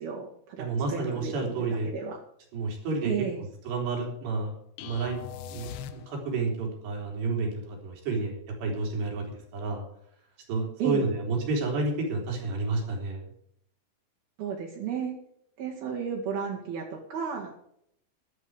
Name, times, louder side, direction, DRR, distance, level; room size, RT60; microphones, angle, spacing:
voice 1, 0.0-2.2 3.0-3.4 10.8-11.1 14.4-15.2 15.6-17.6, right 7 dB, 65° right, -2 dB, 3.6 m, -33 dB
voice 2, 0.6-1.9 2.5-3.1 3.7-4.5 4.8-5.2 5.5-9.2 9.5-9.8 10.5-13.3, right 3 dB, 85° right, 1 dB, 5.7 m, -30 dB
sound 1, 4.8-6.5, left 9 dB, 75° left, 2.8 m, -41 dB
14.5 x 11.5 x 4.9 m, 0.71 s
omnidirectional pair, 4.8 m